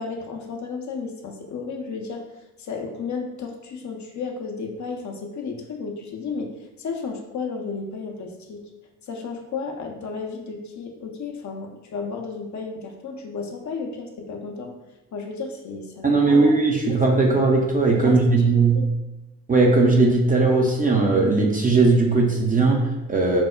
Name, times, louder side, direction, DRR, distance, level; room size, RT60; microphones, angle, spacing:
voice 1, 0.0-2.2 2.6-8.7 9.0-14.7 15.1-16.5 16.9-17.4 17.9-18.9, left 4 dB, 40° left, 2 dB, 0.6 m, -33 dB
voice 2, 16.0-18.8 19.5-23.4, right 3 dB, 20° right, -1 dB, 0.5 m, -18 dB
4.3 x 2.0 x 2.2 m, 0.99 s
hypercardioid pair, 45°, 45 cm